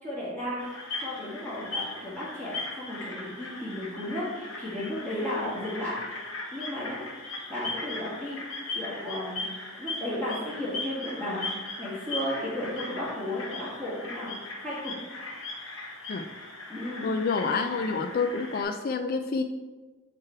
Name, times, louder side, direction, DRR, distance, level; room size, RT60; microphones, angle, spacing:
voice 1, 0.0-5.9 6.5-7.0 7.5-8.4 8.7-9.4 9.8-14.3 14.6-14.9 16.7-17.1, left 1 dB, 5° left, -10 dB, 1.7 m, -34 dB
sound 1, 0.6-18.6, left 2 dB, 60° left, 1.2 m, -38 dB
voice 2, 17.0-19.4, left 4 dB, 40° left, 7 dB, 0.3 m, -28 dB
9.1 x 3.4 x 4.4 m, 1.3 s
head